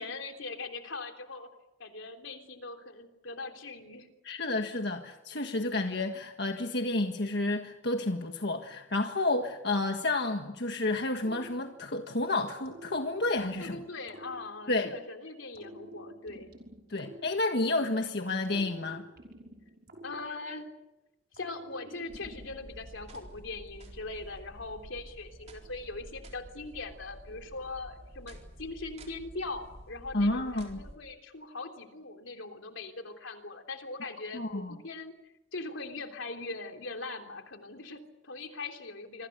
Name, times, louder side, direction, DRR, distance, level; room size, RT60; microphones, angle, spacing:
voice 1, 0.0-1.5 1.8-4.1 13.6-16.5 20.0-20.7 21.4-35.1 35.5-39.3, left 3 dB, 80° left, 5 dB, 3.4 m, -41 dB
voice 2, 4.2-13.8 14.7-14.9 16.9-19.0 30.1-30.8 34.3-34.8, left 2 dB, 60° left, 5 dB, 1.6 m, -30 dB
sound 1, 11.2-12.2 12.6-15.1 15.5-18.0 18.4-20.9 21.3-22.8, equal, 55° right, 6.1 m, -49 dB
sound 2, 22.1-31.0, right 1 dB, 35° right, 4.2 m, -50 dB
27.0 x 24.5 x 6.8 m, 0.90 s
head